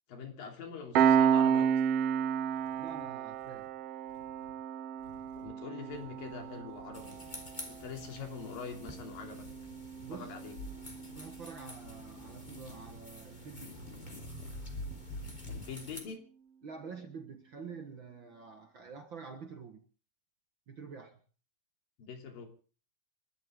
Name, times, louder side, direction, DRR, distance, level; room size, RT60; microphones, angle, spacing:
voice 1, 0.1-1.7 5.4-7.2 7.7-9.4 10.1-10.5 15.5-16.2 22.0-22.5, left 6 dB, 85° left, 4.8 m, -44 dB
Piano, 0.9-12.0, right 8 dB, 65° right, 1.5 m, -32 dB
sound 1, 2.5-3.7 4.1-4.5 5.0-5.5 5.9-7.5 7.8-8.3 9.4-10.1 10.5-11.4 11.8-13.0 13.4-15.7, left 1 dB, 40° left, 4.0 m, -48 dB
voice 2, 2.8-3.7 10.0-10.3 11.1-13.8 16.6-19.8 20.7-21.2, right 5 dB, 50° right, 1.6 m, -47 dB
sound 2, 6.9-16.0, left 1 dB, 15° left, 3.1 m, -51 dB
29.5 x 13.0 x 3.8 m
omnidirectional pair, 3.9 m